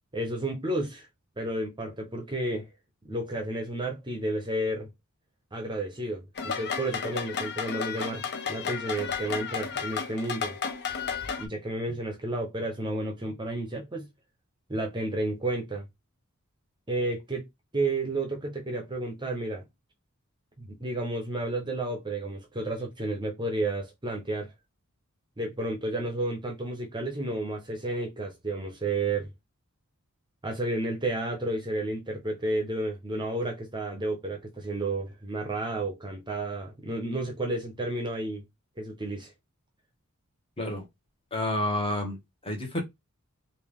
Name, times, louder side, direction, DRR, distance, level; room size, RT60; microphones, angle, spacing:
voice 1, 0.1-1.1 1.4-2.7 3.0-4.9 5.5-10.6 11.4-14.1 14.7-15.9 16.9-17.5 17.7-19.7 20.6-24.5 25.4-29.3 30.4-38.4 38.8-39.3, right 2 dB, 20° right, 0.7 m, -31 dB
sound 1, 6.4-11.5, left 6 dB, 50° left, 0.7 m, -33 dB
voice 2, 41.3-42.8, left 1 dB, 25° left, 1.3 m, -30 dB
3.3 x 2.5 x 3.5 m
head